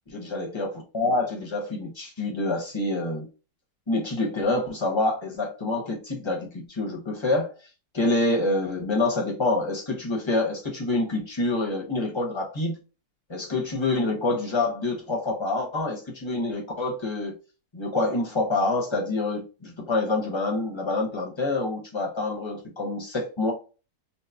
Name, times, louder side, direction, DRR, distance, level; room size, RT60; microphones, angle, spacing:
voice 1, 0.1-3.3 3.9-7.5 7.9-12.8 13.3-17.3 17.7-23.5, left 2 dB, 20° left, 0.8 m, -27 dB
4.6 x 2.0 x 2.8 m
omnidirectional pair, 1.8 m